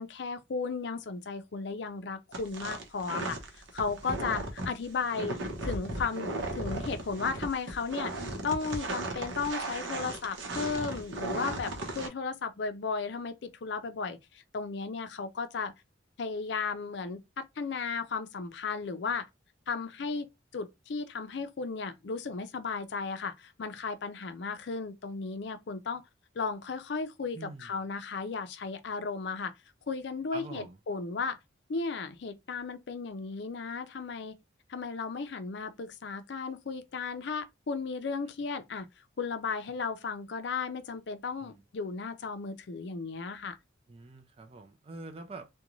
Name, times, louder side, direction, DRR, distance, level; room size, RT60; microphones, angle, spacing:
voice 1, 0.0-8.1 8.4-14.2 14.5-15.7 16.2-19.3 19.7-26.0 26.4-29.5 29.9-31.4 31.7-34.4 34.7-38.9 39.2-43.6, left 4 dB, 60° left, 0.4 m, -35 dB
sound 1, 2.3-12.1, right 2 dB, 70° right, 0.7 m, -36 dB
voice 2, 27.3-27.7 30.3-30.8 41.4-41.6 43.9-45.5, right 3 dB, 30° right, 0.4 m, -45 dB
2.5 x 2.2 x 3.0 m
head